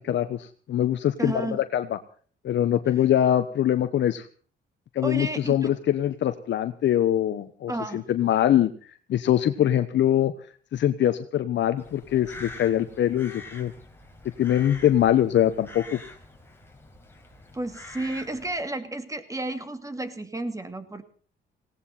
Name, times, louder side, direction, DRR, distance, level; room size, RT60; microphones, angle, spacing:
voice 1, 0.0-2.0 2.4-4.3 4.9-8.7 9.1-10.3 10.7-13.7 14.4-16.0, left 11 dB, 65° left, 9 dB, 1.1 m, -23 dB
voice 2, 1.2-1.6 5.0-5.7 7.7-8.1 17.5-21.0, right 2 dB, 15° right, 9 dB, 2.6 m, -32 dB
Crow, 11.8-18.6, left 2 dB, 10° left, 4.5 m, -45 dB
18.5 x 18.0 x 4.3 m, 0.43 s
cardioid pair, 90°, 20 cm